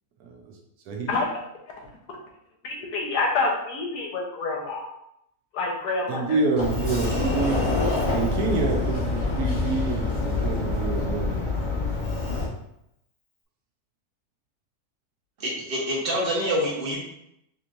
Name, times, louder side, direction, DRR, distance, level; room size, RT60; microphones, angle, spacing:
voice 1, 0.9-1.2 6.1-7.7 8.1-11.5, right 3 dB, 75° right, 1 dB, 1.2 m, -27 dB
voice 2, 2.6-4.9 5.5-6.4, left 3 dB, 90° left, 0 dB, 1.4 m, -27 dB
Sliding door, 6.6-12.5, left 2 dB, 30° left, 0.6 m, -26 dB
voice 3, 15.4-17.0, equal, 40° right, -4 dB, 1.1 m, -26 dB
4.2 x 3.0 x 2.5 m, 0.80 s
omnidirectional pair, 1.6 m